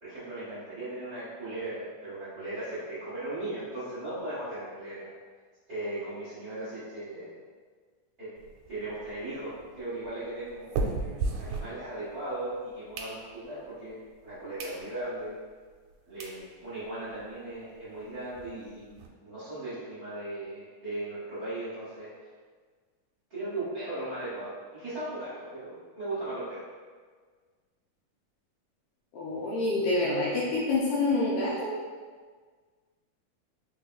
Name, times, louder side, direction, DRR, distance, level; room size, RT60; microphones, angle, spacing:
voice 1, 0.0-5.1 5.7-7.3 8.2-8.3 8.7-10.9 11.4-15.4 16.0-22.1 23.3-26.7, right 1 dB, 45° right, -12 dB, 1.3 m, -37 dB
Snapping fingers, 8.4-12.3 12.7-13.7 14.2-14.3 14.6-14.8 15.2-15.3 15.9-16.0 16.2-16.4 16.8-16.9 17.1-17.2 17.5-17.6 17.9-19.1, right 3 dB, 85° right, 2.2 m, -36 dB
voice 2, 29.1-31.7, left 2 dB, 75° left, -7 dB, 2.2 m, -27 dB
5.2 x 3.9 x 2.4 m, 1.5 s
omnidirectional pair, 3.8 m